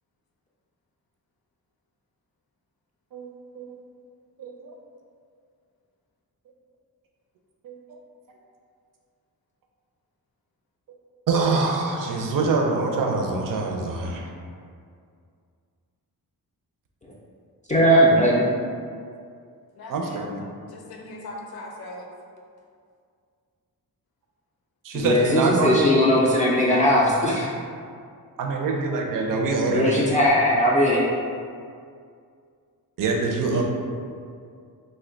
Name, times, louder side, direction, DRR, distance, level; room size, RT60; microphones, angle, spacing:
voice 1, 3.1-3.8 4.4-4.8 7.6-8.0 11.3-14.3 19.9-20.4 24.8-25.9 28.4-30.1 33.0-33.6, right 3 dB, 65° right, 1 dB, 0.5 m, -25 dB
voice 2, 17.7-18.5 24.9-27.5 29.6-31.1, equal, 20° left, -6 dB, 0.3 m, -19 dB
voice 3, 19.8-20.3 20.7-22.1 33.5-33.6, left 1 dB, 90° left, 0 dB, 0.5 m, -39 dB
2.7 x 2.2 x 3.8 m, 2.3 s
wide cardioid pair, 105°, 36 cm